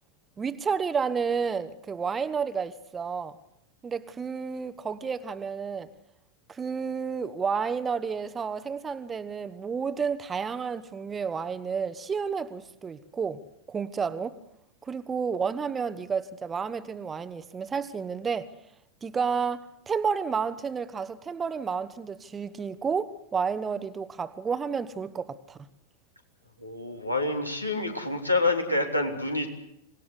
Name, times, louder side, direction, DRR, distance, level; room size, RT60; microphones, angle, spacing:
voice 1, 0.4-3.4 3.8-5.9 6.5-13.4 13.7-14.4 14.8-18.5 19.0-25.6, right 6 dB, 20° right, 1.1 m, -31 dB
voice 2, 26.6-29.5, left 2 dB, 85° left, 3.4 m, -27 dB
26.5 x 19.0 x 8.1 m
figure-of-eight pair, 90°, 0 cm